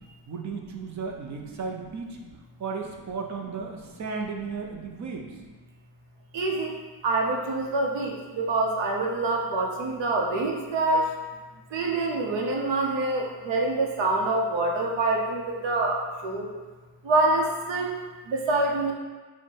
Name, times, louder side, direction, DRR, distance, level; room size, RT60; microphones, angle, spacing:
voice 1, 0.3-2.2 2.6-5.4, right 5 dB, 40° right, 2 dB, 0.5 m, -34 dB
voice 2, 6.3-11.1 11.7-16.5 17.0-17.9 18.3-18.9, right 2 dB, 70° right, 0 dB, 0.8 m, -26 dB
4.5 x 2.2 x 4.4 m, 1.3 s
cardioid pair, 125°, 45 cm